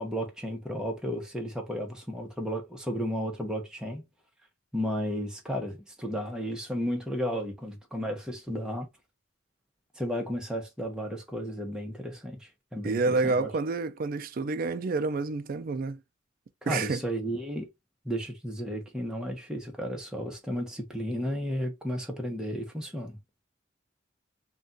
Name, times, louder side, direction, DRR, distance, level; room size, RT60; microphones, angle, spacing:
voice 1, 0.0-4.0 4.7-8.9 10.0-13.5 16.6-17.7 18.0-23.2, equal, 5° right, 0.7 m, -33 dB
voice 2, 12.8-16.0 16.7-17.0, right 3 dB, 45° right, 0.4 m, -28 dB
2.4 x 2.3 x 3.7 m
head